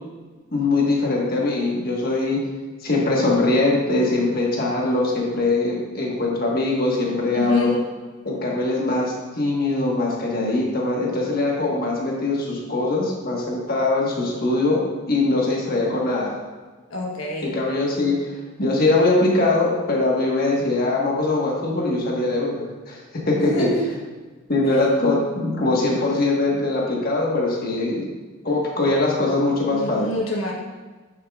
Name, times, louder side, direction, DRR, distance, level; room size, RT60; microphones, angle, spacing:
voice 1, 0.5-2.4 2.8-7.7 8.2-16.4 17.4-18.3 18.6-23.7 24.5-28.1 28.4-30.1, left 2 dB, 45° left, -2 dB, 1.4 m, -22 dB
voice 2, 7.3-7.8 16.9-17.5 23.4-23.9 24.7-24.8 29.7-30.5, left 2 dB, 75° left, -2 dB, 1.2 m, -26 dB
9.5 x 7.3 x 2.4 m, 1.3 s
head